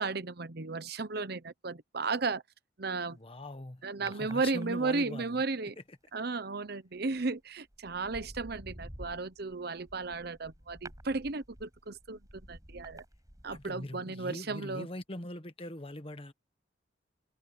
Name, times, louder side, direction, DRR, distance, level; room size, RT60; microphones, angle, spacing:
voice 1, 0.0-2.4 2.8-3.2 3.8-5.8 6.1-12.2 12.5-13.0 13.4-14.9, right 3 dB, 60° right, 1.0 m, -34 dB
voice 2, 3.1-5.4 5.8-6.0 13.5-16.3, left 1 dB, 30° left, 1.4 m, -42 dB
sound 1, 4.1-5.1 7.0-7.2 7.7-13.9 14.2-14.3, right 1 dB, 20° right, 5.8 m, -50 dB
head